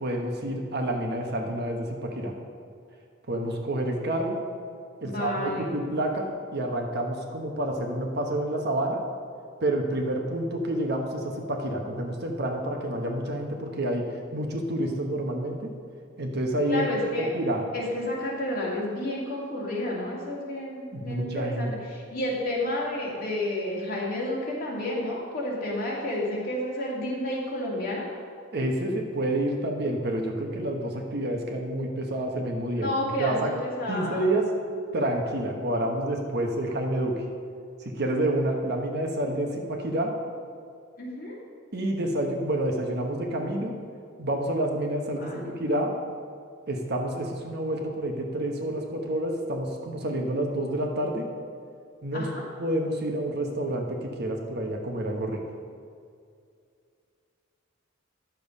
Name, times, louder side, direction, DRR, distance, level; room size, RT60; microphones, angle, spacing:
voice 1, 0.0-2.3 3.3-4.4 5.0-9.0 9.6-15.7 16.2-16.9 17.2-17.6 20.9-21.7 28.5-33.5 33.9-34.4 34.9-37.2 37.8-40.1 41.7-43.7 44.2-45.9 46.7-51.3 52.0-52.3 52.6-55.4, right 1 dB, 55° right, 2 dB, 1.2 m, -28 dB
voice 2, 5.0-5.8 16.7-17.3 17.7-28.1 32.8-34.3 41.0-41.4 45.2-45.5 52.1-52.4, left 1 dB, 45° left, -4 dB, 2.5 m, -31 dB
10.5 x 7.1 x 5.3 m, 2.3 s
head